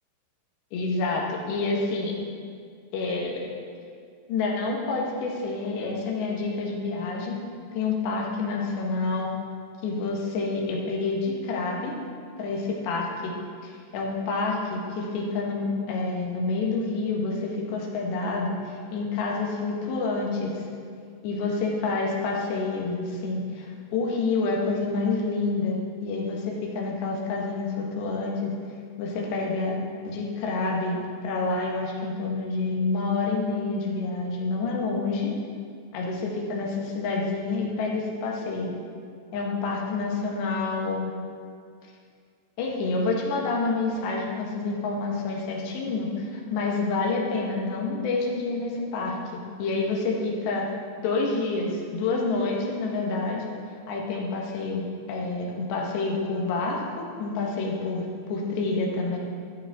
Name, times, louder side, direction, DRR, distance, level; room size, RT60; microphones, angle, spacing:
voice 1, 0.7-2.2 2.9-3.5 4.3-7.4 7.7-9.3 9.8-11.9 12.4-13.3 13.6-20.7 21.2-28.5 29.0-35.3 35.9-38.7 39.3-41.1 42.6-50.7 51.0-53.5 53.9-59.2, left 3 dB, 80° left, -2 dB, 3.6 m, -28 dB
14.0 x 9.3 x 3.6 m, 2.2 s
omnidirectional pair, 5.0 m